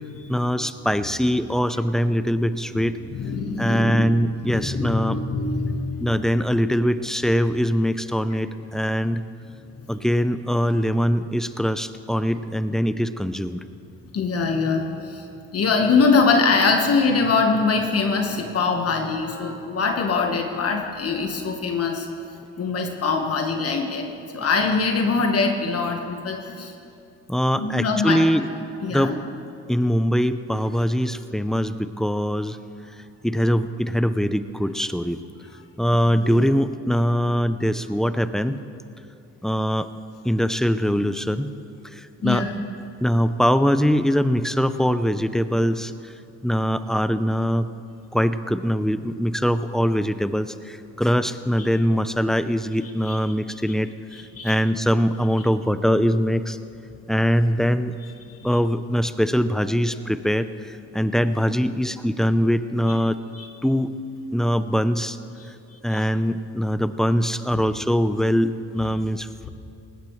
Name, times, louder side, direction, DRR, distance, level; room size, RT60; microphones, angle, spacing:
voice 1, 0.3-3.0 3.6-5.2 6.0-9.2 9.9-13.6 27.3-28.5 28.9-29.1 29.7-32.6 33.2-35.2 35.8-38.6 39.4-39.9 40.2-41.5 41.9-42.5 43.0-46.1 46.4-47.7 48.1-53.9 54.4-56.6 57.1-58.0 58.4-63.2 63.6-64.0 64.3-65.2 65.8-69.3, equal, ahead, 11 dB, 0.5 m, -22 dB
voice 2, 2.7-4.1 4.4-6.1 14.1-15.2 15.5-22.1 22.6-24.1 24.3-26.7 27.5-28.2 28.8-29.2 36.2-36.4 42.2-42.5 53.0-53.2 54.1-54.5 58.4-58.5 63.3-63.5 65.9-66.0 69.4-69.5, left 4 dB, 50° left, 3 dB, 1.4 m, -23 dB
19.0 x 16.5 x 3.2 m, 2.5 s
cardioid pair, 90°, 30 cm